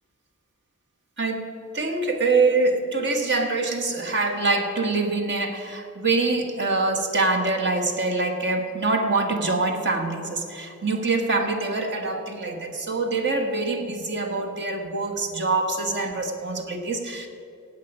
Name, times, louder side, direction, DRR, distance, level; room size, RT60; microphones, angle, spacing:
voice 1, 1.2-1.5 1.7-17.3, right 3 dB, 50° right, 5 dB, 1.4 m, -24 dB
17.0 x 8.4 x 5.4 m, 2.7 s
head